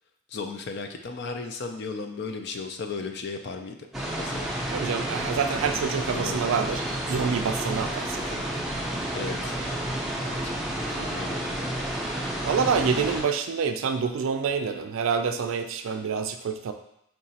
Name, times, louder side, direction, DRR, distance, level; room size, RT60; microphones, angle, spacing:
voice 1, 0.3-3.8 4.2-4.5 5.9-6.4 9.1-9.5 10.3-10.5 10.9-11.7, left 4 dB, 55° left, 5 dB, 0.4 m, -35 dB
sound 1, 3.9-13.2, right 1 dB, ahead, 0.5 m, -30 dB
voice 2, 4.7-8.4 12.4-16.7, right 6 dB, 80° right, 8 dB, 0.3 m, -27 dB
4.5 x 2.9 x 2.8 m, 0.77 s
head